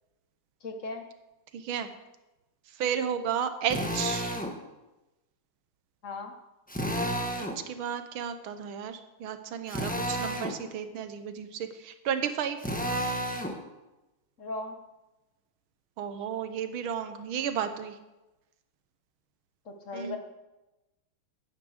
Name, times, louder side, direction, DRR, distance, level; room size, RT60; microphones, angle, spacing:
voice 1, 0.6-1.0 6.0-6.3 14.4-14.8 19.6-20.2, left 3 dB, 45° left, 5 dB, 1.2 m, -37 dB
voice 2, 1.5-1.9 2.8-4.3 7.4-12.6 16.0-18.0 19.9-20.2, right 8 dB, 75° right, 9 dB, 1.7 m, -33 dB
Drill, 3.7-4.5 6.7-7.6 9.7-10.6 12.6-13.6, equal, 5° left, 0.7 m, -31 dB
9.8 x 9.6 x 6.5 m, 1.0 s
omnidirectional pair, 2.3 m